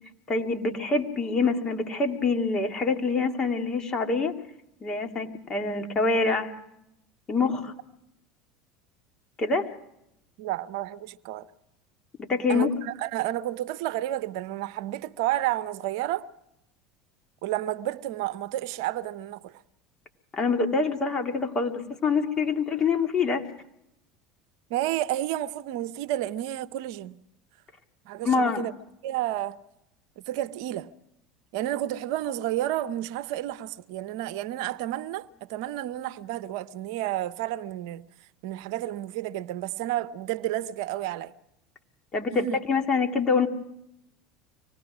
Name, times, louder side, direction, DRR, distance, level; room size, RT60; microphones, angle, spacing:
voice 1, 0.3-4.3 4.8-6.5 7.3-7.7 9.4-9.7 12.2-12.7 20.3-23.4 28.2-28.7 42.1-43.5, left 4 dB, 30° left, 2.3 m, -25 dB
voice 2, 10.4-11.5 12.5-16.3 17.4-19.5 24.7-27.2 28.1-28.7 29.0-29.6 30.3-30.9 31.5-38.0 38.4-41.3 42.3-42.6, right 14 dB, 70° right, 0.7 m, -31 dB
24.5 x 19.0 x 6.1 m
hypercardioid pair, 80°, 2 cm